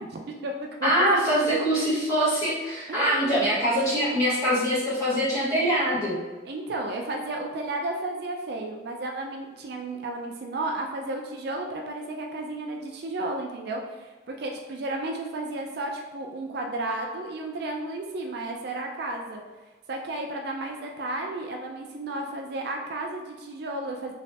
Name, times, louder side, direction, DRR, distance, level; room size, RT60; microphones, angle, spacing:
voice 1, 0.0-1.1 2.9-3.5 6.5-19.4 19.9-24.1, right 2 dB, 55° right, 2 dB, 0.3 m, -33 dB
voice 2, 0.8-6.2, equal, 15° left, -11 dB, 1.4 m, -23 dB
3.2 x 3.1 x 2.7 m, 1.2 s
head